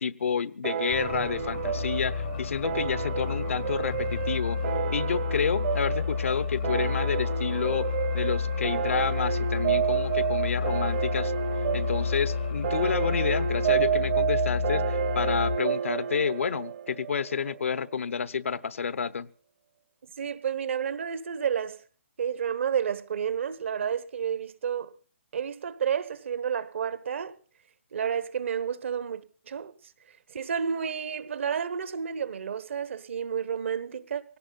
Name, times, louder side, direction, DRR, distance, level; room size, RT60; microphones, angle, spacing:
voice 1, 0.0-4.6 4.9-7.9 8.1-11.3 11.7-19.3, left 6 dB, 80° left, 0.9 m, -29 dB
sound 1, 0.6-17.7, right 9 dB, 45° right, 1.0 m, -30 dB
sound 2, 0.9-15.6, left 7 dB, 50° left, 0.7 m, -31 dB
voice 2, 20.2-21.8 22.2-24.9 25.3-27.4 27.9-29.7 30.3-34.4, right 7 dB, 65° right, 1.2 m, -30 dB
17.5 x 17.5 x 4.0 m
hypercardioid pair, 155°, 7 cm